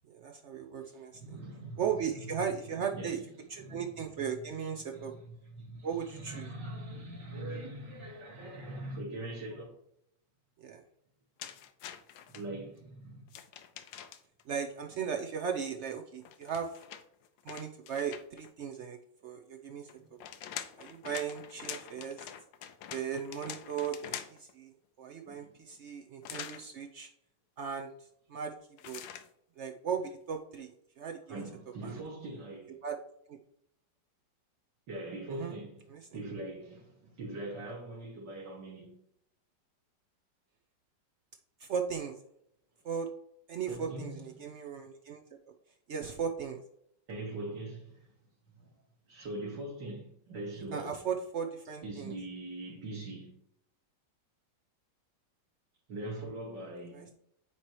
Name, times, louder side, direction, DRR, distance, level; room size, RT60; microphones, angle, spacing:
voice 1, 0.1-1.2 1.8-3.2 3.5-5.1 5.8-6.5 10.6-10.8 14.5-16.8 17.4-20.2 20.8-22.3 22.9-27.1 27.6-27.9 28.3-28.5 28.8-29.0 29.6-31.4 31.8-32.0 32.8-33.0 33.3-33.4 35.3-35.6 35.9-36.1 41.6-42.2 42.8-43.1 43.5-45.2 45.9-46.6 50.7-52.1 56.9-57.1, right 7 dB, 85° right, 0.6 m, -37 dB
voice 2, 1.1-2.3 2.7-3.1 3.6-4.1 4.9-9.7 12.3-13.2 20.0-20.1 25.3-25.6 31.3-32.8 34.9-35.9 36.1-38.9 43.7-44.4 47.1-48.1 48.6-48.7 49.1-51.1 51.8-53.3 55.9-57.1, right 2 dB, 70° right, 2.6 m, -42 dB
sound 1, 11.4-12.4 13.3-14.4 16.2-18.5 19.9-24.5 26.2-26.6 28.8-29.3, left 10 dB, 85° left, 1.4 m, -45 dB
8.9 x 3.1 x 4.6 m
omnidirectional pair, 2.0 m